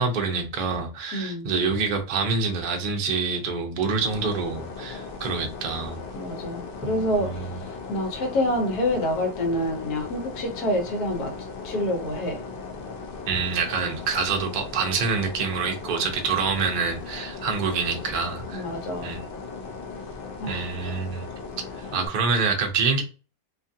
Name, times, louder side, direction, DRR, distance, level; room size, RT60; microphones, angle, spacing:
voice 1, 0.0-6.0 6.8-7.6 13.2-18.7 19.0-19.2 20.5-21.3 21.8-23.0, right 5 dB, 60° right, 0.5 m, -26 dB
voice 2, 1.1-1.5 6.1-11.3 11.6-12.4 18.5-19.1 20.4-20.7, left 1 dB, 90° left, 1.4 m, -27 dB
sound 1, 4.0-22.1, left 4 dB, 60° left, 0.5 m, -38 dB
2.9 x 2.4 x 2.6 m
omnidirectional pair, 1.6 m